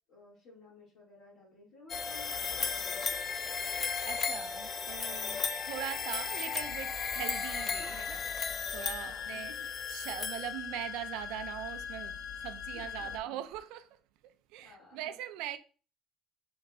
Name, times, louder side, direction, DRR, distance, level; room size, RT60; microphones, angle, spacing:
voice 1, 0.1-3.6 7.7-8.3 9.0-9.7 12.7-13.4 14.6-15.2, left 2 dB, 55° left, 2.4 m, -55 dB
sound 1, 1.9-11.0, left 5 dB, 30° left, 0.4 m, -36 dB
voice 2, 4.0-8.3 8.7-9.5 9.9-14.0 14.2-15.6, right 12 dB, 80° right, 0.4 m, -41 dB
sound 2, 6.6-13.2, left 8 dB, 85° left, 0.7 m, -41 dB
5.3 x 3.7 x 2.6 m
cardioid pair, 135°, 0 cm